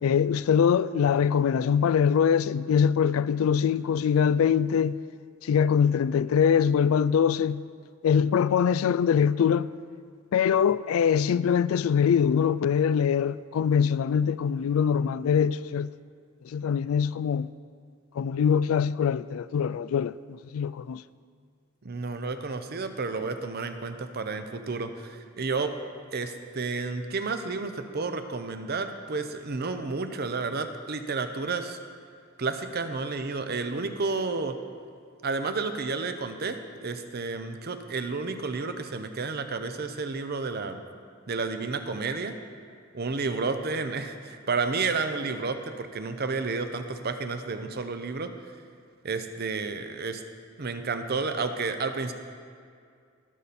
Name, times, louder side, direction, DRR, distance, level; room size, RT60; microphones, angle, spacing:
voice 1, 0.0-5.0 5.4-7.6 8.0-9.7 10.3-15.9 16.5-17.5 18.1-21.0, left 7 dB, 85° left, 0.3 m, -23 dB
voice 2, 21.8-25.7 26.1-31.8 32.4-34.6 35.2-40.8 41.3-42.3 42.9-48.3 49.0-50.2 50.6-52.1, right 4 dB, 50° right, 0.7 m, -31 dB
19.5 x 6.9 x 4.2 m
head